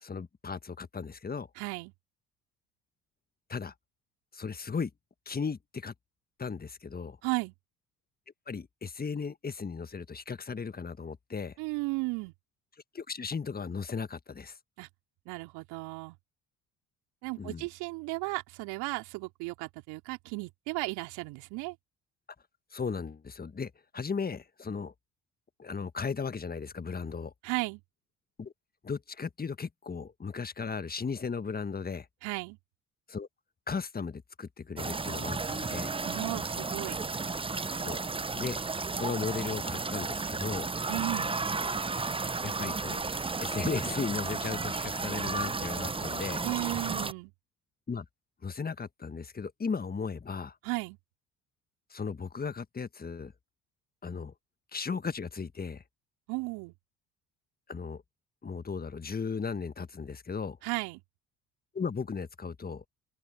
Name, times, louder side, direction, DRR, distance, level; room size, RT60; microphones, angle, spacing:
voice 1, 0.0-1.5 3.5-3.7 4.3-4.9 5.2-5.9 6.4-7.2 8.5-11.5 12.9-14.6 17.4-17.6 22.7-24.9 25.6-27.3 28.4-28.5 28.8-32.1 33.1-33.3 33.7-35.9 37.8-38.0 38.3-38.6 38.9-40.7 42.4-43.0 43.4-46.4 47.9-48.0 48.4-50.6 51.9-53.3 54.0-54.3 54.7-55.8 57.7-58.0 58.4-60.6 61.7-62.8, left 5 dB, 20° left, 1.5 m, -36 dB
voice 2, 1.6-1.9 7.2-7.5 11.6-12.3 14.8-14.9 15.3-16.2 17.2-21.8 27.4-27.8 32.2-32.6 36.0-37.0 40.9-41.3 46.4-47.3 50.6-51.0 56.3-56.7 60.6-61.0, right 25 dB, 70° right, 3.5 m, -35 dB
sound 1, 34.8-47.1, right 4 dB, 15° right, 0.9 m, -33 dB
open air
hypercardioid pair, 60°, 40 cm